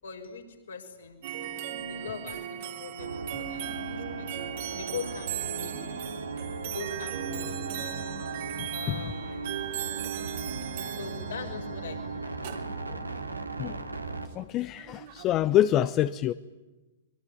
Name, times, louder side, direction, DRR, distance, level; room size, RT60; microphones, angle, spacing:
voice 1, 0.0-1.2 1.9-4.4 4.8-5.8 6.6-7.6 8.7-9.6 10.9-12.3, left 6 dB, 70° left, 3 dB, 6.2 m, -41 dB
sound 1, 1.2-15.3, right 9 dB, 55° right, 3.2 m, -38 dB
sound 2, 3.0-14.3, right 3 dB, 90° right, 2.4 m, -38 dB
voice 2, 14.3-16.3, left 12 dB, 30° left, 13 dB, 0.9 m, -26 dB
25.0 x 23.5 x 9.8 m, 1.1 s
figure-of-eight pair, 105°, 0 cm